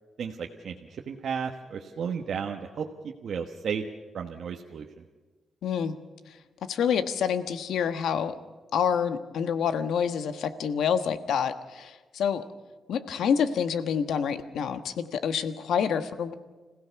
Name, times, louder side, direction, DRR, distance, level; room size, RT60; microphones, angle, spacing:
voice 1, 0.2-0.7 1.1-2.9 3.2-3.8 4.1-4.8, right 7 dB, 60° right, 2 dB, 1.3 m, -33 dB
voice 2, 5.6-5.9 6.6-8.3 8.7-12.4 12.9-16.3, left 7 dB, 90° left, 11 dB, 1.3 m, -27 dB
26.5 x 16.5 x 7.0 m, 1.3 s
wide cardioid pair, 155°, 0 cm